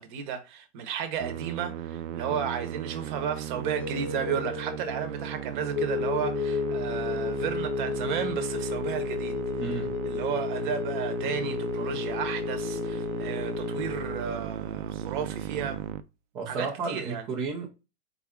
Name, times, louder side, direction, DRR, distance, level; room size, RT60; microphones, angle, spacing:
voice 1, 0.0-9.4 10.0-15.8 16.5-17.3, right 7 dB, 40° right, 0.8 m, -33 dB
Musical instrument, 1.2-16.0, right 9 dB, 80° right, 0.5 m, -36 dB
sound 1, 3.6-14.2, left 7 dB, 35° left, 0.6 m, -33 dB
voice 2, 9.6-9.9 16.3-17.7, right 4 dB, 10° right, 0.3 m, -33 dB
3.9 x 2.4 x 3.6 m
hypercardioid pair, 140°, 37 cm